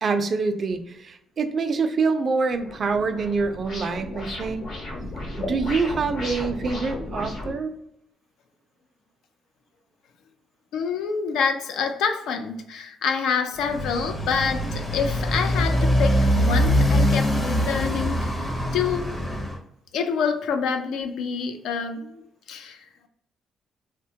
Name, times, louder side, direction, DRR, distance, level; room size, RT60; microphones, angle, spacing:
voice 1, 0.0-4.7 5.4-7.7, right 4 dB, 50° right, 8 dB, 0.4 m, -25 dB
sound 1, 2.5-7.5, left 2 dB, 60° left, 1.0 m, -34 dB
voice 2, 10.7-19.1 19.9-22.2 22.5-22.9, left 6 dB, 80° left, 6 dB, 0.4 m, -27 dB
Motorcycle, 13.6-19.6, equal, 30° left, 0.7 m, -23 dB
2.9 x 2.1 x 2.7 m, 0.76 s
cardioid pair, 90°, 0 cm